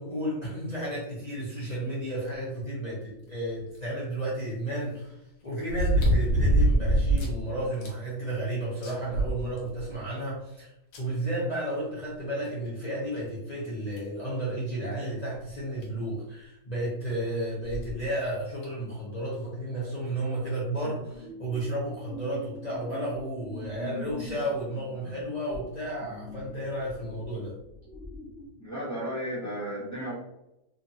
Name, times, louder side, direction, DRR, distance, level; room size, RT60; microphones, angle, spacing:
voice 1, 0.0-5.1 5.4-10.7 11.0-27.6, right 1 dB, 40° left, -7 dB, 0.6 m, -32 dB
sound 1, 3.7-3.8 5.7-7.4 7.8-7.9 8.4-8.5 8.8-9.9 10.9-11.0 12.5-12.6 13.1-13.2 14.0-14.2 15.5-15.6 15.8-15.9 17.6-17.9 18.6-18.7, right 1 dB, 70° left, 1.2 m, -24 dB
sound 2, 20.8-28.5, left 2 dB, 20° right, 0.5 m, -43 dB
voice 2, 28.6-30.1, equal, 15° left, -6 dB, 0.8 m, -34 dB
2.9 x 2.5 x 2.7 m, 0.86 s
omnidirectional pair, 1.6 m